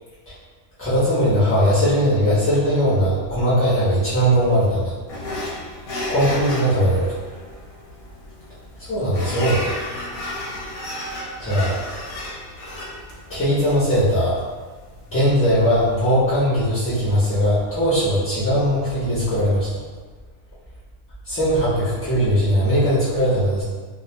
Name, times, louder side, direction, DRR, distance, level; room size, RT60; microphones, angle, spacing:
voice 1, 0.8-4.9 6.1-7.1 8.8-9.7 11.4-11.8 13.3-14.3 15.1-19.8 21.3-23.6, equal, 20° left, -13 dB, 0.4 m, -19 dB
sound 1, 5.1-15.9, left 1 dB, 70° left, 0.9 m, -33 dB
2.3 x 2.1 x 2.8 m, 1.4 s
omnidirectional pair, 1.3 m